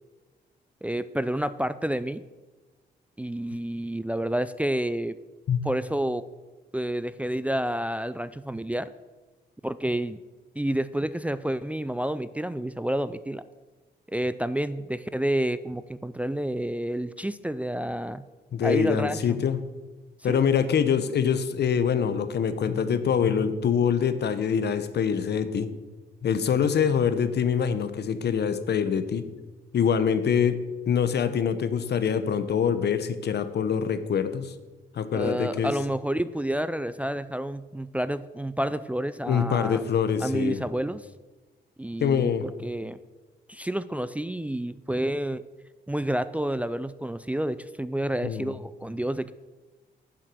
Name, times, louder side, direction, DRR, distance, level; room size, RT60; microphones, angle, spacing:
voice 1, 0.8-2.2 3.2-5.2 5.6-6.2 6.7-8.9 9.6-10.2 10.6-13.4 14.1-18.2 18.6-19.4 20.3-20.4 35.1-39.8 40.2-41.1 41.8-43.0 43.5-45.4 45.9-49.3, right 1 dB, 10° right, 13 dB, 0.4 m, -29 dB
voice 2, 18.5-19.6 20.2-25.7 26.2-29.2 29.7-30.6 30.9-34.5 34.9-35.7 39.3-40.6 42.0-42.5 48.2-48.5, left 7 dB, 65° left, 11 dB, 0.9 m, -24 dB
10.5 x 7.5 x 6.2 m, 1.2 s
cardioid pair, 70°, 18 cm